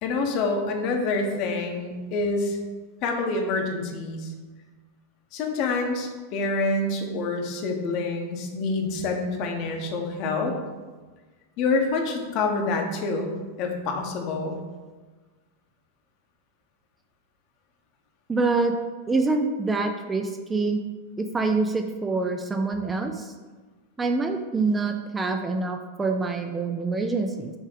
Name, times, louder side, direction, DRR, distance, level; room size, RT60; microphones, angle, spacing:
voice 1, 0.0-2.6 3.0-4.3 5.3-10.5 11.6-14.6, left 3 dB, 40° left, 3 dB, 1.0 m, -27 dB
voice 2, 18.3-18.7 19.1-20.8 21.2-23.3 24.0-27.5, right 3 dB, 15° right, 5 dB, 0.4 m, -26 dB
6.2 x 3.3 x 4.9 m, 1.3 s
figure-of-eight pair, 90°, 0 cm